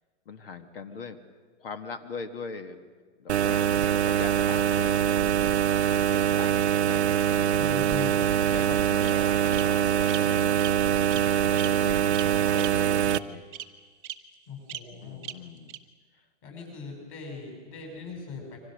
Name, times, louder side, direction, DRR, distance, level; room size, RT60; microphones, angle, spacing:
voice 1, 0.3-1.2 1.6-2.8 3.2-5.0 5.9-7.1 8.5-10.6 11.5-13.5 15.0-15.7, left 5 dB, 50° left, 8 dB, 1.9 m, -41 dB
sound 1, 3.3-13.2, right 9 dB, 65° right, 0.9 m, -24 dB
voice 2, 7.5-8.3 14.5-15.3 16.4-18.6, left 4 dB, 30° left, 1 dB, 7.6 m, -40 dB
Bird vocalization bird call bird song, 7.6-8.4 9.0-9.1 9.5-9.6 10.1-10.2 10.6-10.7 11.1-11.2 11.6-11.7 12.1-12.3 12.6-12.7 13.1-13.2 13.5-13.6 14.0-14.1 14.7-14.8 15.2-15.3 15.7-15.8, right 13 dB, 15° right, 0.8 m, -36 dB
27.5 x 25.0 x 6.6 m, 1.5 s
hypercardioid pair, 175°, 35 cm